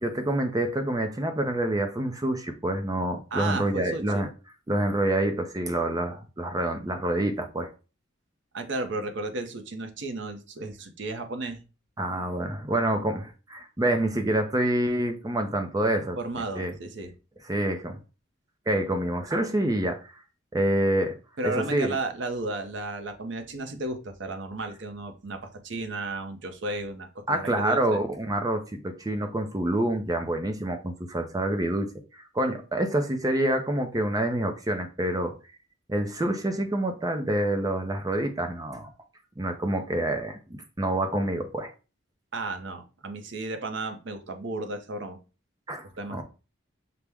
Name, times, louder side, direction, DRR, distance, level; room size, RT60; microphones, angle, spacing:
voice 1, 0.0-4.3 4.7-7.7 12.0-16.2 16.6-16.7 17.4-18.0 18.7-20.1 20.5-21.2 21.4-21.9 27.3-35.3 35.9-38.9 39.4-41.7 45.7-45.9 46.1-46.2, right 1 dB, 20° right, 0.4 m, -27 dB
voice 2, 3.3-4.2 8.5-11.6 16.0-17.1 21.4-28.0 42.3-45.2 46.0-46.2, right 2 dB, 65° right, 0.7 m, -34 dB
5.9 x 2.1 x 3.4 m
head